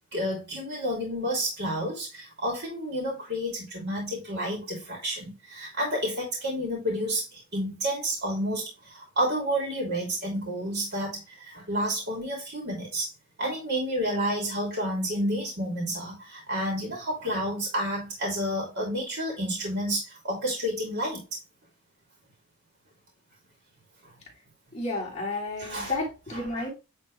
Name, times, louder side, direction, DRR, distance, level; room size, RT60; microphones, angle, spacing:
voice 1, 0.1-13.1 13.4-21.2 24.0-24.1 25.6-25.9 26.3-26.6, equal, 50° right, -1 dB, 2.8 m, -30 dB
voice 2, 24.7-26.7, left 2 dB, 30° left, -3 dB, 3.1 m, -31 dB
9.4 x 4.0 x 3.2 m, 0.28 s
head